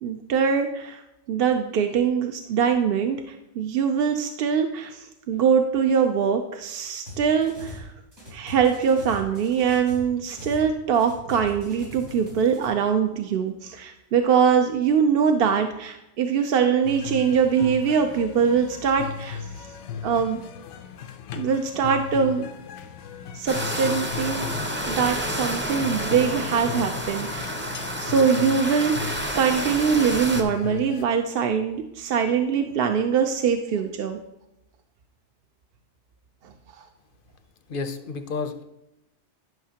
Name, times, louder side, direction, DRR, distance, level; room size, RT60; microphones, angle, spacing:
voice 1, 0.0-1.0 1.3-3.2 3.6-7.9 8.3-19.4 20.0-20.4 21.3-22.4 23.3-24.5 24.9-27.5 28.0-34.2, right 6 dB, 60° right, 5 dB, 0.7 m, -23 dB
sound 1, 7.1-7.9 8.1-10.7 10.9-12.7, left 1 dB, 75° right, 3.6 m, -41 dB
sound 2, 16.8-31.1, left 7 dB, 90° left, 0.9 m, -37 dB
sound 3, 23.5-30.4, right 1 dB, 10° right, 0.6 m, -30 dB
voice 2, 37.7-38.6, left 4 dB, 55° left, 8 dB, 0.7 m, -31 dB
11.0 x 5.8 x 2.8 m, 0.91 s
omnidirectional pair, 1.2 m